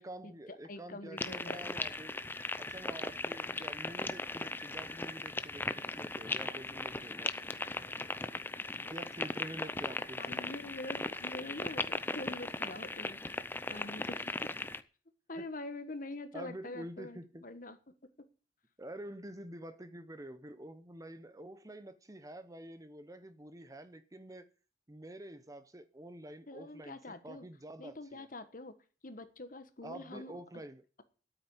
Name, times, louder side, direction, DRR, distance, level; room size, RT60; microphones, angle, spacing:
voice 1, 0.0-2.2 2.6-7.4 8.9-10.5 15.4-15.5 16.3-17.4 18.8-24.5 24.9-27.0 27.2-28.3 29.8-30.8, right 1 dB, 20° right, 0.8 m, -48 dB
voice 2, 0.7-1.6 6.3-6.4 10.2-13.2 13.7-14.2 15.3-17.8 26.5-27.5 27.8-28.7 29.0-30.3, left 2 dB, 50° left, 1.4 m, -45 dB
sound 1, 1.2-14.8, left 2 dB, 10° left, 0.6 m, -38 dB
9.0 x 8.7 x 9.7 m
head